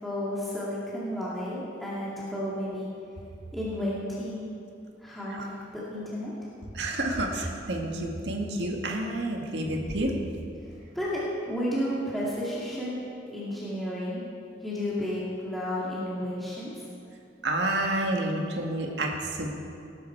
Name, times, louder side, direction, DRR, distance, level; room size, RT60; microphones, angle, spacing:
voice 1, 0.0-2.9 3.5-4.5 5.0-6.3 10.6-13.0 13.3-14.2 14.6-16.9, equal, ahead, -9 dB, 2.3 m, -32 dB
voice 2, 6.7-10.1 17.4-19.5, right 1 dB, 70° right, 1 dB, 1.8 m, -29 dB
18.5 x 11.0 x 4.6 m, 2.6 s
head